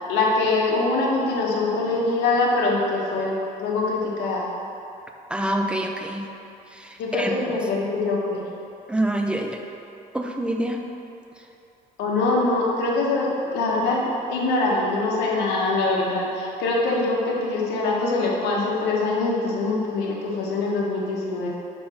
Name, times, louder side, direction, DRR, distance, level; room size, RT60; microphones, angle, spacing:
voice 1, 0.1-3.3 3.6-4.5 7.0-8.4 12.0-21.5, left 3 dB, 90° left, -3 dB, 1.2 m, -23 dB
voice 2, 5.3-6.3 6.8-7.3 8.9-9.6 10.1-10.8, right 1 dB, 5° right, 2 dB, 0.5 m, -26 dB
5.1 x 4.3 x 5.8 m, 2.7 s
cardioid pair, 110°, 17 cm